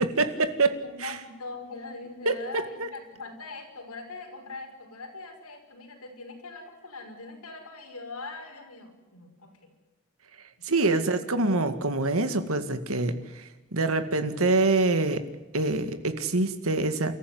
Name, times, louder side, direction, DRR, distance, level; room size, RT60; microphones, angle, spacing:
voice 1, 0.0-1.1 2.3-2.4 10.6-13.4 13.7-15.2 15.5-17.1, right 3 dB, 70° right, 9 dB, 2.0 m, -25 dB
voice 2, 0.8-9.7 10.9-11.2, left 3 dB, 85° left, 3 dB, 5.9 m, -42 dB
29.5 x 14.0 x 9.6 m, 1.1 s
head